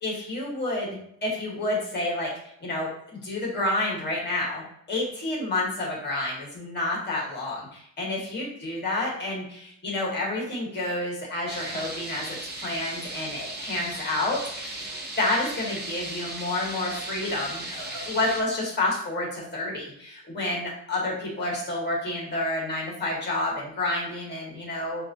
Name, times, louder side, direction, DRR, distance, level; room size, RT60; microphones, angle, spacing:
voice 1, 0.0-2.3 2.6-4.6 4.9-12.4 12.6-14.9 15.2-25.0, left 2 dB, 30° left, -3 dB, 1.7 m, -29 dB
sound 1, 11.5-18.4, right 2 dB, 30° right, 0.8 m, -36 dB
6.9 x 2.7 x 2.6 m, 0.69 s
cardioid pair, 170°, 36 cm